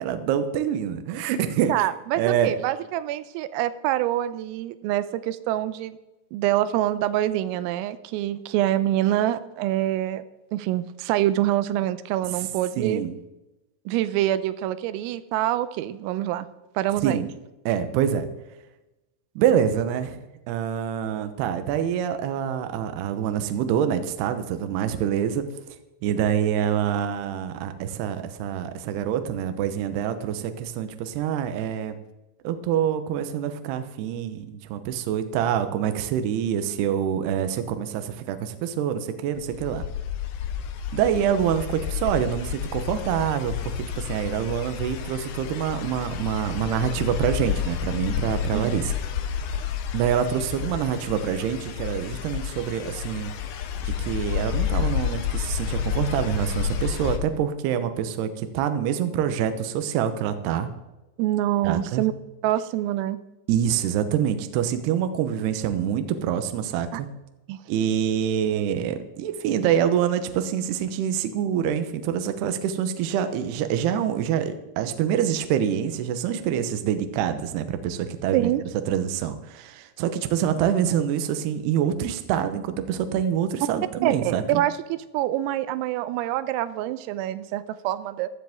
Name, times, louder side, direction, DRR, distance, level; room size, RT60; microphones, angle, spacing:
voice 1, 0.0-1.9 2.2-2.5 12.8-13.1 17.0-17.3 17.7-18.3 19.4-20.2 20.5-25.4 26.0-32.0 32.4-39.8 40.9-49.0 49.9-53.3 53.9-60.7 61.6-62.0 63.5-67.1 67.7-78.5 78.9-84.6, right 9 dB, 75° right, 9 dB, 2.5 m, -26 dB
voice 2, 1.7-6.0 6.3-10.2 10.5-13.0 13.9-16.5 16.8-17.3 48.6-48.7 61.2-62.1 62.4-63.2 66.9-67.0 67.5-67.6 78.3-78.6 84.0-88.3, right 13 dB, 90° right, 13 dB, 3.4 m, -25 dB
sound 1, 39.4-57.2, left 8 dB, 75° left, 2.3 m, -30 dB
15.5 x 13.0 x 3.6 m, 1.0 s
omnidirectional pair, 5.9 m